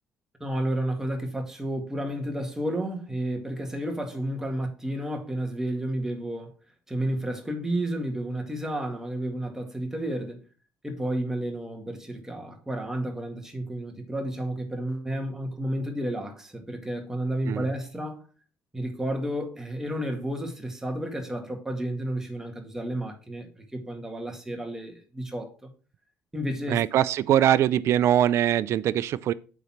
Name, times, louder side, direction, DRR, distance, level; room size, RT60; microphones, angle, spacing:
voice 1, 0.4-6.5 6.9-10.4 10.8-18.2 18.7-25.7 26.3-26.8, right 1 dB, 10° right, 2.0 m, -31 dB
voice 2, 26.7-29.3, right 11 dB, 65° right, 0.4 m, -22 dB
8.3 x 4.1 x 5.9 m
cardioid pair, 100°, 5 cm